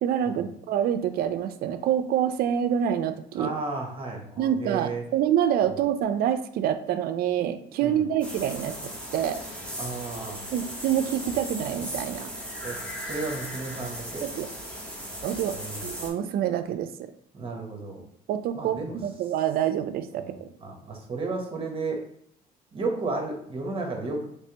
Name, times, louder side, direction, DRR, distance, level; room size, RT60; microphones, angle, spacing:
voice 1, 0.0-3.5 4.4-9.4 10.5-12.3 14.2-14.5 15.2-16.9 18.3-20.5, right 9 dB, 65° right, 9 dB, 0.4 m, -27 dB
voice 2, 3.4-5.0 5.6-5.8 7.8-8.0 9.8-10.4 12.6-12.8 13.1-14.2 15.5-15.9 17.3-18.0 18.5-19.0 20.1-22.0 22.7-24.3, right 3 dB, 30° right, 1 dB, 1.0 m, -33 dB
sound 1, 8.2-16.1, equal, 5° left, 1.0 m, -37 dB
3.2 x 3.2 x 2.9 m, 0.69 s
cardioid pair, 110°, 17 cm